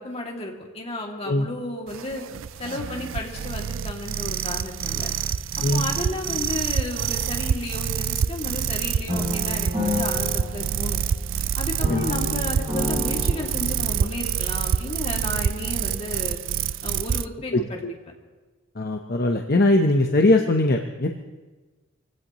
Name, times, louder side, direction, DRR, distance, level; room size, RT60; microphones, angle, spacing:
voice 1, 0.0-2.2 2.6-5.1 5.6-11.0 11.6-16.4 16.8-17.8, left 2 dB, 30° left, -1 dB, 2.5 m, -33 dB
sound 1, 1.9-17.3, right 8 dB, 70° right, 0.4 m, -27 dB
sound 2, 9.1-11.4 11.8-14.1, left 2 dB, 30° right, 6.3 m, -30 dB
voice 2, 17.5-17.9 18.8-21.1, left 2 dB, 50° left, 3 dB, 0.9 m, -21 dB
26.0 x 16.5 x 3.1 m, 1.3 s
head